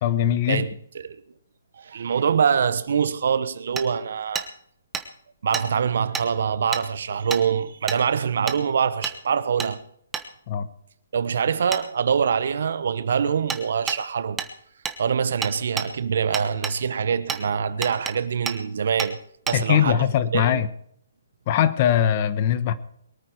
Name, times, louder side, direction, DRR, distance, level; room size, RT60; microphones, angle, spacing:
voice 1, 0.0-0.7 10.5-10.7 19.5-20.7 21.5-22.7, left 10 dB, 35° left, 1.1 m, -21 dB
voice 2, 1.8-4.5 5.4-9.8 11.1-14.4 15.0-19.2 19.5-20.1 20.3-20.6, right 7 dB, 65° right, 1.1 m, -24 dB
Hammer, 3.8-3.9 4.4-4.5 4.9-5.1 5.5-5.7 6.1-6.3 6.7-6.8 7.3-7.4 7.9-8.0 8.5-8.6 9.0-9.2 9.6-9.7 10.1-10.3 11.7-11.8 13.5-13.6 13.9-14.0 14.4-14.5 14.9-15.0 15.4-15.9 16.3-16.8 17.3-17.4 17.8-18.2 18.5-18.6 19.0-19.1 19.5-19.6, right 6 dB, 10° right, 1.2 m, -29 dB
22.5 x 9.2 x 4.7 m
hypercardioid pair, 150°, 0 cm